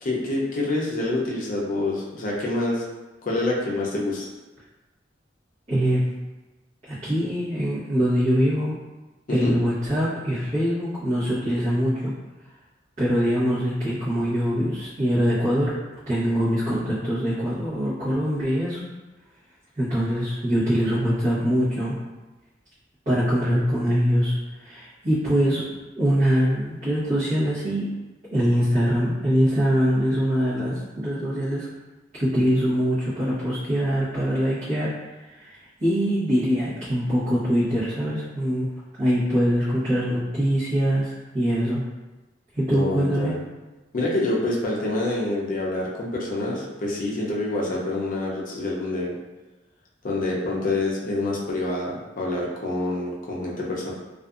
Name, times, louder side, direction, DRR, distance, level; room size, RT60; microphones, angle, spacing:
voice 1, 0.0-2.8 3.2-4.3 9.3-9.6 42.7-43.4 43.9-49.1 50.0-53.9, left 2 dB, 45° left, -4 dB, 0.5 m, -26 dB
voice 2, 5.7-6.0 6.9-8.8 9.3-12.1 13.0-15.7 16.1-18.8 19.8-22.0 23.1-25.7 26.0-27.9 28.3-31.7 32.1-34.9 35.3-35.5 35.8-38.7 39.0-41.8 42.5-43.3, equal, 40° right, -14 dB, 0.9 m, -23 dB
2.5 x 2.4 x 2.4 m, 1.1 s
head